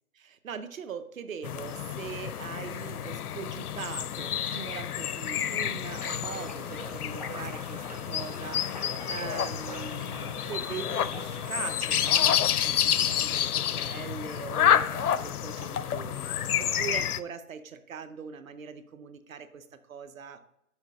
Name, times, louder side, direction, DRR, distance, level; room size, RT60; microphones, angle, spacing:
voice 1, 0.2-20.4, right 6 dB, 65° right, 11 dB, 0.8 m, -41 dB
sound 1, 1.4-17.2, left 9 dB, 80° left, 0.6 m, -29 dB
sound 2, 5.9-11.8, right 1 dB, 30° right, 0.4 m, -43 dB
6.3 x 4.9 x 4.8 m, 0.82 s
hypercardioid pair, 165°, 44 cm